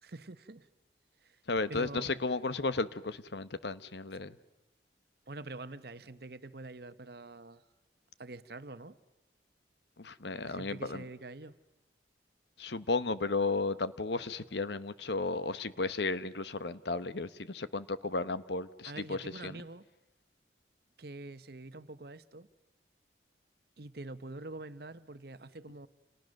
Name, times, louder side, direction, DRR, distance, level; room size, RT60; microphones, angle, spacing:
voice 1, 0.0-0.7 1.2-1.4 1.7-2.2 5.3-7.6 8.2-9.0 10.4-11.6 18.8-19.9 21.0-22.5 23.8-25.9, right 2 dB, 55° right, 12 dB, 1.1 m, -45 dB
voice 2, 1.5-4.4 10.0-11.0 12.6-19.5, left 3 dB, 70° left, 14 dB, 1.0 m, -34 dB
29.5 x 29.0 x 6.5 m, 0.98 s
head